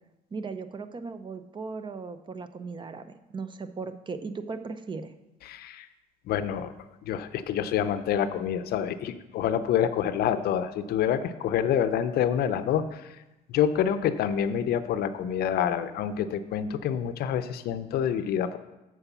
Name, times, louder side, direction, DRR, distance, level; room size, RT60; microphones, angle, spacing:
voice 1, 0.3-5.1, right 4 dB, 30° right, 10 dB, 0.5 m, -37 dB
voice 2, 5.5-5.9 6.3-6.7 7.1-13.2 13.5-18.6, left 9 dB, 65° left, 11 dB, 0.5 m, -27 dB
7.1 x 4.6 x 6.8 m, 0.98 s
cardioid pair, 110°, 17 cm